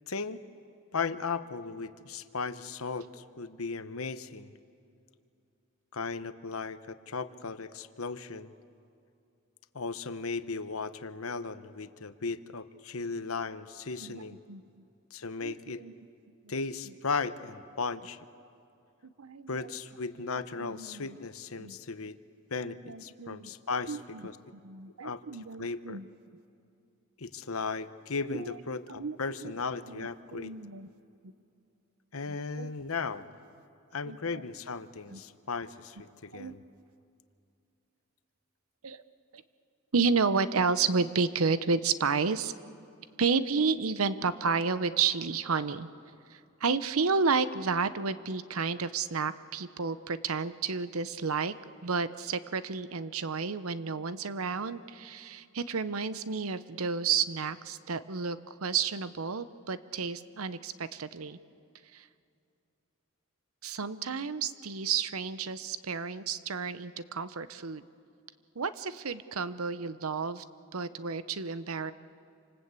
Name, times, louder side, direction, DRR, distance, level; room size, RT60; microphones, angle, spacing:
voice 1, 0.1-0.4 0.9-4.5 5.9-8.5 9.7-14.4 15.1-15.8 16.5-18.2 19.5-22.2 22.5-24.4 25.0-26.0 27.2-30.5 32.1-33.3 33.9-36.6, left 4 dB, 80° left, 12 dB, 1.0 m, -36 dB
voice 2, 14.0-14.6 15.4-15.9 16.4-16.5 19.2-19.6 20.6-21.1 21.6-21.8 22.6-23.5 23.9-24.2 24.6-26.1 28.3-28.5 28.9-29.2 29.4-29.5 29.9-30.9 32.6-32.7 34.1-34.2 35.1-35.2 36.3-36.6 38.8-39.0 39.3-39.4 39.9-42.5 43.2-45.9 46.3-51.5 51.8-61.4 61.9-62.1 63.6-67.8 68.6-70.4 70.7-71.9, right 5 dB, 85° right, 14 dB, 0.8 m, -31 dB
27.5 x 26.0 x 8.3 m, 2.6 s
head